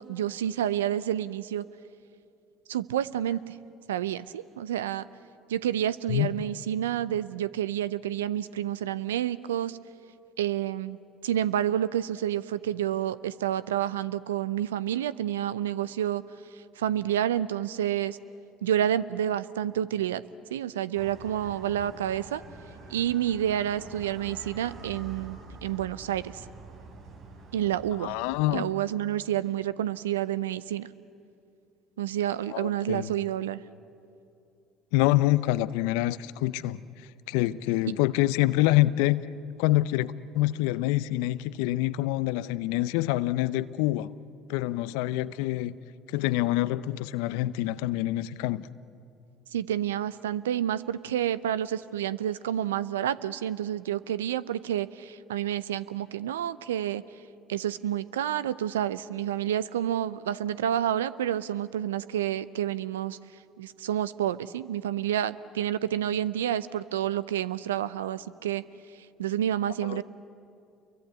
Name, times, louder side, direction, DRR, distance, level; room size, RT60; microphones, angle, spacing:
voice 1, 0.0-1.6 2.7-3.6 3.9-5.1 5.5-9.8 10.4-16.2 16.5-18.2 18.6-20.2 20.5-22.4 22.9-26.4 27.5-28.2 28.5-30.9 32.0-33.6 49.5-57.0 57.5-63.2 63.6-68.6 69.2-70.0, right 11 dB, 85° right, 17 dB, 0.6 m, -29 dB
sound 1, 20.9-28.4, right 4 dB, 60° right, 3.9 m, -46 dB
voice 2, 28.0-28.6 32.5-33.1 34.9-39.2 39.6-44.1 44.5-45.7 46.1-48.7 69.8-70.0, left 16 dB, 70° left, 17 dB, 0.6 m, -26 dB
29.5 x 23.0 x 8.3 m, 2.5 s
hypercardioid pair, 60°, 0 cm